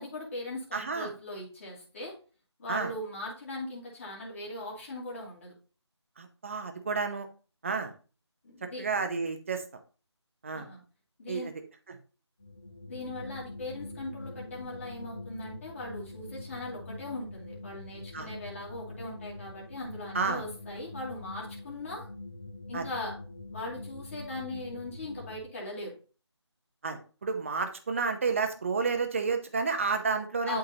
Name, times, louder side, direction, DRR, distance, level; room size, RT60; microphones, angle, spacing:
voice 1, 0.0-2.1 2.6-5.5 8.4-8.8 10.5-10.8 11.2-11.5 12.9-22.1 22.7-23.2 23.5-25.9 30.5-30.6, left 2 dB, 30° left, -3 dB, 2.5 m, -39 dB
voice 2, 0.7-1.1 2.7-2.9 6.2-7.3 7.6-7.9 8.6-9.6 10.4-10.7 11.3-11.5 18.1-18.3 20.1-20.4 22.7-22.8 26.8-30.6, right 4 dB, 25° right, 6 dB, 0.8 m, -31 dB
sound 1, 12.4-25.4, left 2 dB, 10° left, 0.4 m, -44 dB
11.0 x 3.7 x 2.8 m, 0.36 s
figure-of-eight pair, 165°, 15 cm